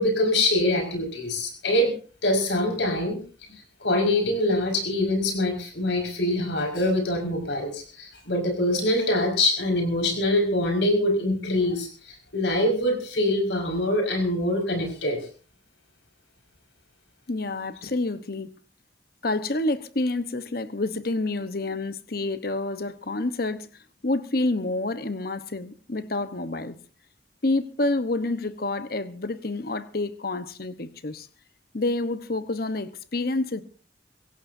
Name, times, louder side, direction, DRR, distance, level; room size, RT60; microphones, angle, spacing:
voice 1, 0.0-3.2 3.8-15.2, left 1 dB, 80° left, 5.5 m, -24 dB
voice 2, 17.3-18.5 19.2-23.7 24.0-26.8 27.4-31.3 31.7-33.6, left 2 dB, 55° left, 1.1 m, -28 dB
24.0 x 17.0 x 2.7 m
head